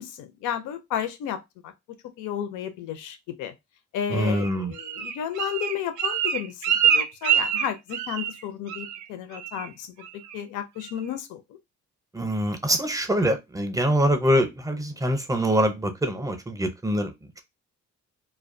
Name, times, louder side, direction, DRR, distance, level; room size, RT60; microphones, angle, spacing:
voice 1, 0.0-1.7 2.2-3.5 3.9-11.6, left 9 dB, 85° left, 0.5 m, -33 dB
voice 2, 4.1-4.7 12.1-17.1, equal, 10° right, 0.5 m, -24 dB
Bird, 4.3-8.4 8.7-9.1 9.3-9.7 10.0-10.4 10.8-10.9, right 8 dB, 75° right, 0.5 m, -25 dB
2.4 x 2.2 x 2.5 m
cardioid pair, 90°, 30 cm